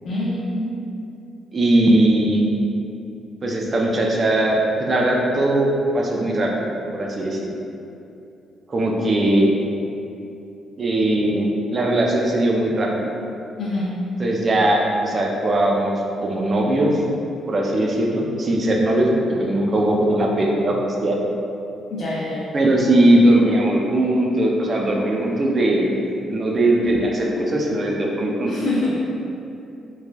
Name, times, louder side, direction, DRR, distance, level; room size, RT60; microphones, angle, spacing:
voice 1, 0.0-0.7 13.6-14.0 21.9-22.4 28.5-28.9, left 2 dB, 65° left, -6 dB, 0.4 m, -25 dB
voice 2, 1.5-2.4 3.4-7.4 8.7-9.5 10.8-13.1 14.2-17.0 17.5-19.1 19.4-20.8 21.0-21.2 22.5-26.0 26.3-28.5, right 1 dB, 40° right, -1 dB, 0.4 m, -19 dB
3.1 x 2.3 x 2.2 m, 2.7 s
cardioid pair, 90°, 0 cm